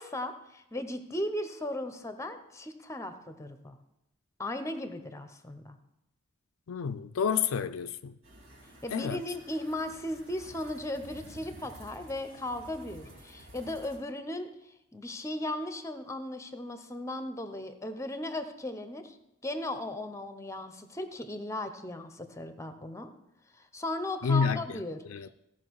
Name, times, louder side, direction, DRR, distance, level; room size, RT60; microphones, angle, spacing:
voice 1, 0.0-3.8 4.4-5.8 8.8-14.5 14.9-19.2 19.4-23.1 23.7-25.0, left 1 dB, 15° left, 0.8 m, -36 dB
voice 2, 6.7-8.2 8.9-9.2 24.2-24.8 25.1-25.3, left 6 dB, 85° left, 0.4 m, -29 dB
sound 1, 8.2-14.0, right 1 dB, 85° right, 4.1 m, -51 dB
16.0 x 5.9 x 4.7 m
head